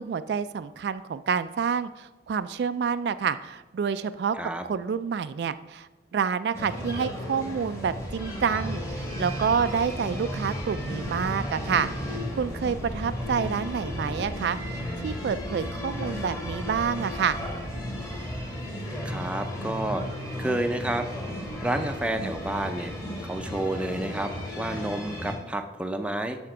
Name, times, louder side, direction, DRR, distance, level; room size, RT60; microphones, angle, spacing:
voice 1, 0.0-4.4 4.6-14.6 15.0-17.4, right 6 dB, 65° right, 13 dB, 0.3 m, -28 dB
sound 1, 6.5-25.3, equal, 20° left, 1.7 m, -34 dB
sound 2, 7.8-18.5, right 1 dB, 40° left, 1.5 m, -42 dB
voice 2, 19.0-20.0 20.4-21.1 21.6-22.9 23.2-24.3 24.6-26.4, right 1 dB, 5° right, 6 dB, 0.5 m, -30 dB
12.5 x 4.4 x 4.9 m, 1.1 s
head